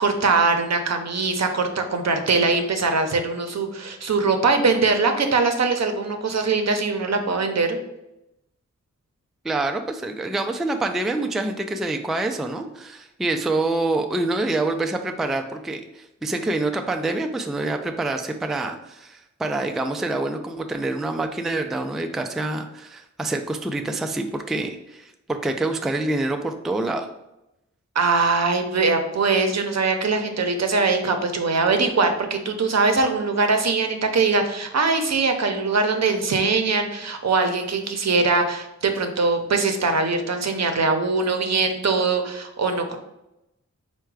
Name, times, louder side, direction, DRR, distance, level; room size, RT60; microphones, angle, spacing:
voice 1, 0.0-7.8 28.0-43.0, right 4 dB, 60° right, 5 dB, 0.6 m, -22 dB
voice 2, 9.4-27.1, right 2 dB, ahead, 5 dB, 0.3 m, -26 dB
4.6 x 2.2 x 4.6 m, 0.90 s
wide cardioid pair, 90°, 30 cm